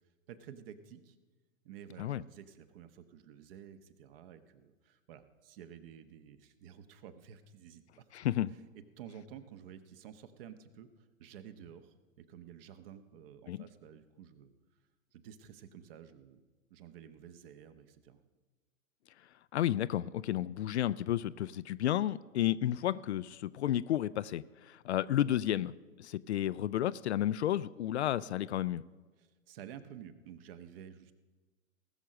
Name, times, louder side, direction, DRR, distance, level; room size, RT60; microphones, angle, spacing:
voice 1, 0.3-1.2 1.6-8.0 8.7-14.5 15.1-18.2 29.2-31.1, right 9 dB, 45° right, 11 dB, 1.1 m, -52 dB
voice 2, 8.1-8.5 13.5-13.6 19.5-25.7 26.0-28.8, left 12 dB, 55° left, 16 dB, 0.5 m, -32 dB
19.0 x 6.5 x 6.3 m, 1.3 s
figure-of-eight pair, 110°, 41 cm